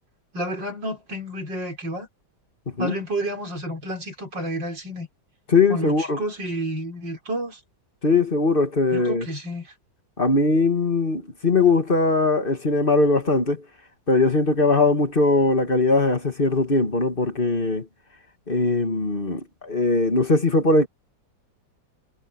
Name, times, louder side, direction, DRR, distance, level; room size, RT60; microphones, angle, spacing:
voice 1, 0.3-2.1 2.8-5.1 5.7-7.6 8.9-9.7, right 1 dB, 90° right, 6.1 m, -30 dB
voice 2, 5.5-6.2 8.0-9.3 10.2-13.6 14.1-17.9 18.5-20.9, left 3 dB, 30° left, 2.3 m, -20 dB
omnidirectional pair, 1.9 m